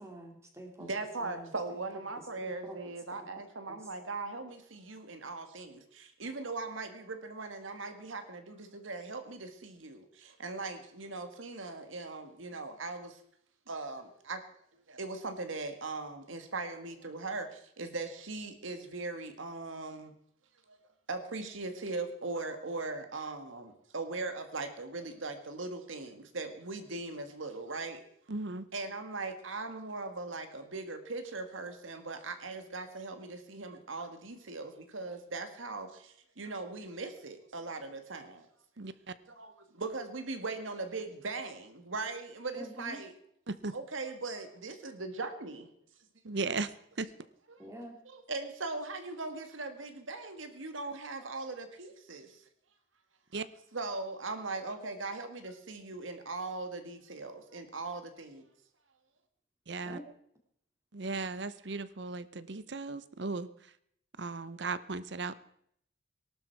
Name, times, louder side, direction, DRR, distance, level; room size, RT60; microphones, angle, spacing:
voice 1, 0.0-0.9 1.2-1.3 2.4-2.8 3.7-3.8 42.6-43.0 47.6-48.0 59.9-60.0, equal, 15° right, 2 dB, 2.5 m, -46 dB
voice 2, 0.8-13.2 13.7-14.4 14.9-20.1 20.7-20.8 21.1-28.0 28.7-38.5 39.4-43.1 43.7-45.7 48.0-52.4 53.7-58.5, right 3 dB, 85° right, 8 dB, 1.8 m, -39 dB
voice 3, 28.3-28.7 38.8-39.2 43.5-43.7 46.2-47.1 53.3-53.5 59.7-60.0 60.9-63.7 64.2-65.4, right 3 dB, 60° right, 15 dB, 0.8 m, -37 dB
18.5 x 12.0 x 4.7 m, 0.70 s
head